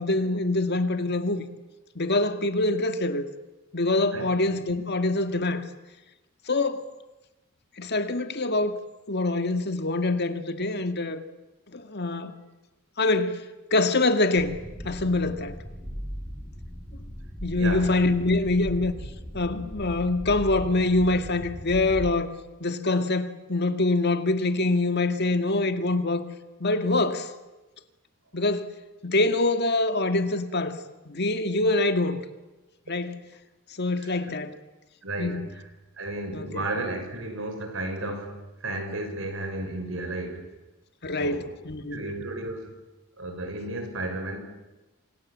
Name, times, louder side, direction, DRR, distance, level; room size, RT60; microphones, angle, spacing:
voice 1, 0.0-1.4 2.0-3.2 3.7-5.6 6.5-6.8 7.8-8.8 9.1-11.2 11.7-12.4 13.0-13.4 13.7-14.6 14.8-15.6 17.4-18.9 19.3-22.3 22.6-26.2 26.6-27.3 28.3-28.7 29.0-30.8 31.1-32.2 32.9-33.2 33.8-34.6 35.2-35.4 36.3-36.6 41.0-42.0, left 2 dB, 55° left, 1.9 m, -25 dB
sound 1, 14.3-22.1, equal, ahead, 5.7 m, -38 dB
voice 2, 17.6-17.9 32.9-33.0 34.0-34.2 35.0-35.6 36.0-40.5 41.2-41.5 41.9-42.7 43.2-44.4, right 2 dB, 70° right, 5.8 m, -33 dB
28.5 x 26.5 x 7.5 m
head